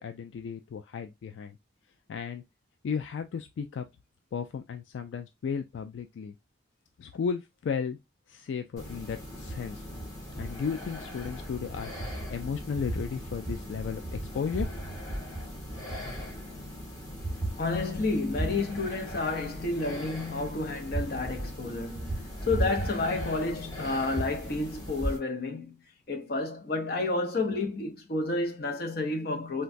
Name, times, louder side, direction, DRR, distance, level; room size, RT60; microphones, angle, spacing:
voice 1, 0.0-1.6 2.1-2.4 2.8-3.9 4.3-6.3 7.0-8.0 8.3-9.8 10.4-14.8, left 6 dB, 80° left, 0.3 m, -34 dB
sound 1, 8.8-25.2, right 1 dB, 20° left, 1.1 m, -37 dB
voice 2, 17.6-22.1 22.5-25.8 26.1-29.6, left 3 dB, 55° left, 0.7 m, -30 dB
3.8 x 2.2 x 2.5 m
head